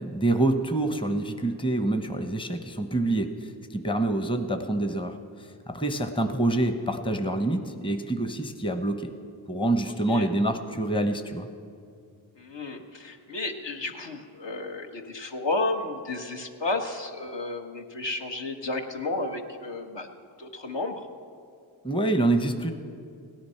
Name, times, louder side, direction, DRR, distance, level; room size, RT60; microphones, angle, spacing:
voice 1, 0.0-9.1 9.5-11.5 21.8-22.7, right 2 dB, 10° left, 7 dB, 0.9 m, -26 dB
voice 2, 12.4-20.1 20.4-21.0, left 2 dB, 65° left, 3 dB, 1.4 m, -32 dB
17.0 x 10.5 x 5.7 m, 2.3 s
cardioid pair, 60°, 47 cm